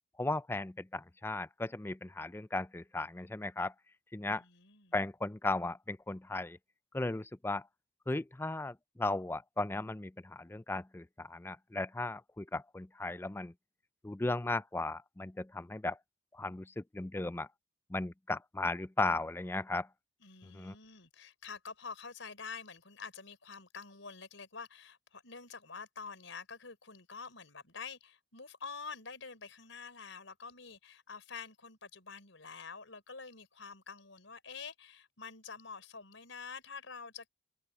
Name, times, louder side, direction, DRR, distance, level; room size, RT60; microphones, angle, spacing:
voice 1, 0.2-3.7 4.1-4.4 4.9-6.6 6.9-7.7 8.1-13.5 14.0-16.0 16.3-17.5 17.9-19.9 20.4-20.7, left 2 dB, 10° left, 0.4 m, -36 dB
voice 2, 4.3-4.9 20.2-37.3, left 5 dB, 80° left, 4.4 m, -47 dB
open air
head